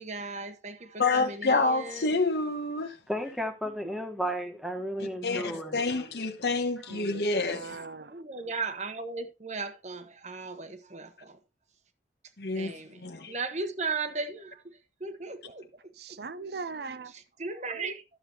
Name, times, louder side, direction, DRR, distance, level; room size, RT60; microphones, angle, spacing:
voice 1, 0.0-2.2 3.8-3.9 4.2-4.3 7.5-7.6 8.1-11.4 12.5-16.2 17.1-18.0, right 4 dB, 40° right, 1.2 m, -37 dB
voice 2, 1.0-3.0 5.0-7.8 12.4-12.7 13.0-13.3, left 3 dB, 70° left, 1.1 m, -28 dB
voice 3, 3.1-5.8 6.8-6.9, equal, ahead, 1.4 m, -33 dB
voice 4, 6.9-8.2 16.0-17.1, right 4 dB, 65° right, 0.6 m, -40 dB
12.5 x 7.7 x 3.0 m
head